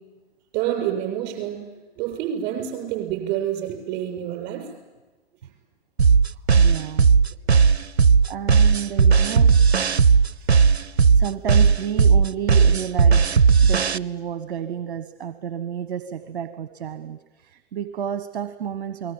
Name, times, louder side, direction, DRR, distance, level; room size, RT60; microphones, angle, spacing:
voice 1, 0.5-1.6 2.0-4.7, right 11 dB, 35° right, 4 dB, 7.2 m, -27 dB
sound 1, 6.0-14.0, right 5 dB, 75° right, 0.8 m, -16 dB
voice 2, 6.6-7.1 8.3-9.5 11.1-13.3 13.6-19.1, right 9 dB, 55° right, 12 dB, 1.4 m, -31 dB
28.5 x 20.5 x 9.1 m, 1.2 s
figure-of-eight pair, 110°, 32 cm